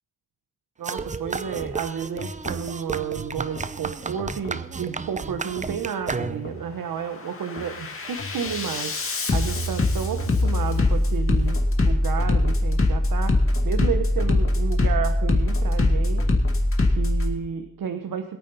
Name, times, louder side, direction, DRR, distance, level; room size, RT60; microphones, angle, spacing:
sound 1, 0.8-6.7, right 4 dB, 20° right, 0.6 m, -32 dB
voice 1, 0.8-9.0 9.3-13.4 13.6-16.2 16.9-18.4, right 7 dB, 80° right, 7 dB, 1.1 m, -31 dB
Bass drum, 1.5-1.7 2.2-2.7 3.5-3.7 4.2-4.7 5.5-5.7 6.2-6.7 7.1-17.3, left 2 dB, 40° left, 2.2 m, -23 dB
22.0 x 9.2 x 4.2 m, 0.85 s
wide cardioid pair, 140°, 33 cm